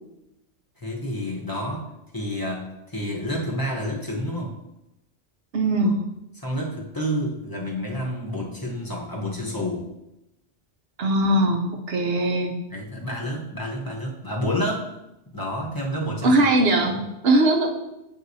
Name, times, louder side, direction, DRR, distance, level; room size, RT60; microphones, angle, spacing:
voice 1, 0.8-4.5 5.8-5.9 6.4-9.9 12.7-14.9 15.3-16.4 16.8-17.0, equal, 20° left, -2 dB, 0.9 m, -29 dB
voice 2, 5.5-6.0 11.0-12.6 16.2-17.8, right 1 dB, 60° right, 3 dB, 0.9 m, -20 dB
7.6 x 4.7 x 2.7 m, 0.90 s
omnidirectional pair, 1.2 m